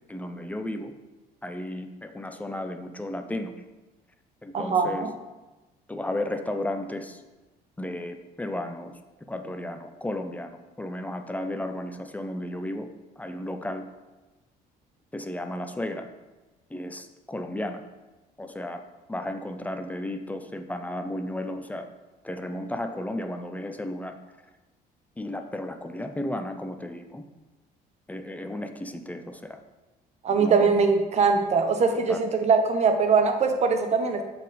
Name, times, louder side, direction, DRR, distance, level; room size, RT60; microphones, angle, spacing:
voice 1, 0.1-0.9 1.4-3.5 4.4-5.1 5.9-7.2 7.8-8.9 9.3-12.9 13.2-13.9 15.1-16.1 16.7-17.8 18.4-18.8 19.1-21.9 22.2-24.2 25.2-27.2 28.1-29.6 30.3-30.7 31.9-32.2, left 1 dB, 10° left, 7 dB, 0.5 m, -34 dB
voice 2, 4.5-5.1 30.2-34.2, right 5 dB, 40° right, 6 dB, 0.8 m, -22 dB
7.0 x 4.2 x 4.1 m, 1.1 s
cardioid pair, 110°, 17 cm